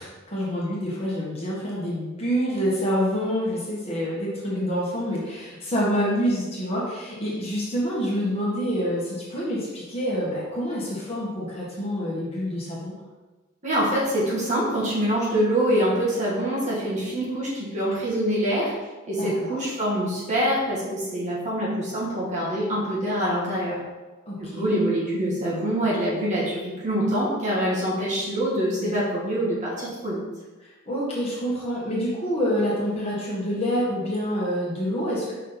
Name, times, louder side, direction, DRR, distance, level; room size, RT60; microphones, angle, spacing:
voice 1, 0.0-12.9 19.2-19.6 24.2-24.8 28.8-28.9 30.6-35.3, equal, 25° left, -6 dB, 1.5 m, -27 dB
voice 2, 13.6-18.7 19.1-23.8 24.4-30.2, equal, 35° right, -7 dB, 2.1 m, -25 dB
5.7 x 5.0 x 4.0 m, 1.2 s
head